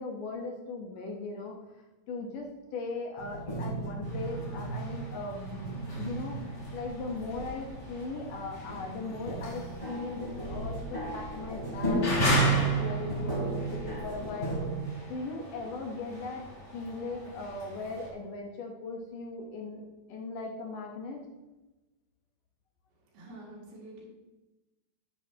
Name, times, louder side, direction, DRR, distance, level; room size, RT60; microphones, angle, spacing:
voice 1, 0.0-1.5 2.1-2.5 2.7-14.6 15.1-16.4 16.7-19.8 20.1-21.2, left 3 dB, 70° left, 1 dB, 2.5 m, -38 dB
sound 1, 3.2-14.8, right 3 dB, 10° left, 2.9 m, -33 dB
sound 2, 4.0-18.1, left 1 dB, 35° left, 2.2 m, -38 dB
voice 2, 23.1-24.1, right 1 dB, 75° right, -2 dB, 4.1 m, -47 dB
11.0 x 9.7 x 2.9 m, 1.1 s
omnidirectional pair, 4.4 m